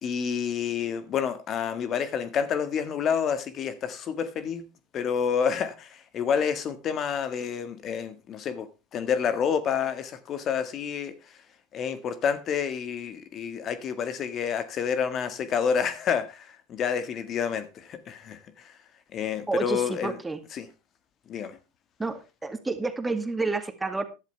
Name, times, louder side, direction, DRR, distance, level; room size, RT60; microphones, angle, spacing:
voice 1, 0.0-4.6 4.9-11.1 11.7-18.7 19.1-20.2 20.5-20.7 21.3-21.6, left 7 dB, 40° left, 1.6 m, -29 dB
voice 2, 19.5-20.4 22.0-24.0, right 3 dB, 10° right, 2.2 m, -29 dB
14.0 x 11.5 x 3.3 m
hypercardioid pair, 85°, 0 cm